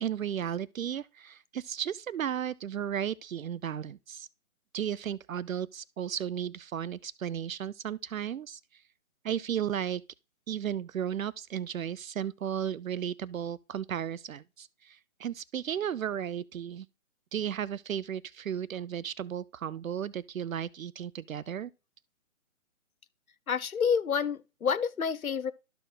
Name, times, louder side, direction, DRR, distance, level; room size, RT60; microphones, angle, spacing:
voice 1, 0.0-4.3 4.7-8.8 9.2-10.0 10.5-16.9 17.3-21.7, right 9 dB, 75° right, 0.6 m, -34 dB
voice 2, 23.5-25.5, left 6 dB, 90° left, 0.9 m, -28 dB
12.5 x 4.6 x 3.7 m
hypercardioid pair, 155°, 41 cm